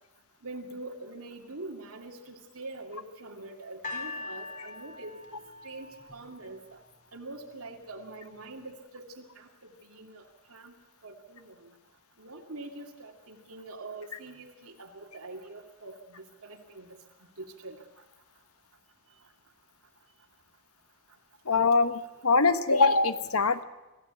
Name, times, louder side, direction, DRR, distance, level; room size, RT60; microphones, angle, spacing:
voice 1, 0.4-6.8 7.1-10.7 11.0-11.7 12.2-16.9 17.4-17.8, right 2 dB, 80° right, 2 dB, 2.4 m, -44 dB
sound 1, 3.8-7.0 7.8-7.9, left 3 dB, 40° left, 4.0 m, -42 dB
voice 2, 21.4-23.6, left 3 dB, 80° left, 12 dB, 1.2 m, -23 dB
25.5 x 15.0 x 8.1 m, 1.0 s
head